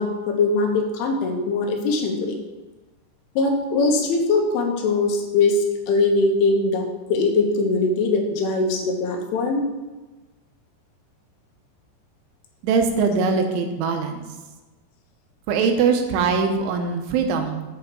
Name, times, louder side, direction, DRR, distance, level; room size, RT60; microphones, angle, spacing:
voice 1, 0.0-2.4 3.4-9.6, left 3 dB, 80° left, 2 dB, 3.7 m, -21 dB
voice 2, 12.6-14.2 15.5-17.7, right 5 dB, 80° right, 5 dB, 3.4 m, -22 dB
8.3 x 6.0 x 6.8 m, 1.2 s
omnidirectional pair, 5.6 m